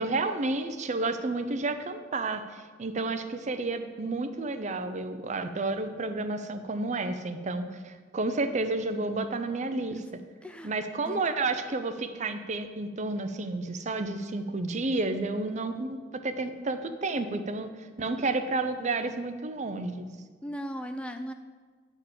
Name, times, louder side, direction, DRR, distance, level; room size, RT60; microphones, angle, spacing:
voice 1, 0.0-10.0 10.6-20.1, right 3 dB, 40° right, 8 dB, 0.6 m, -31 dB
voice 2, 10.4-10.7 11.1-11.2 20.4-21.3, equal, 5° left, 7 dB, 0.3 m, -37 dB
9.2 x 4.5 x 7.3 m, 1.5 s
head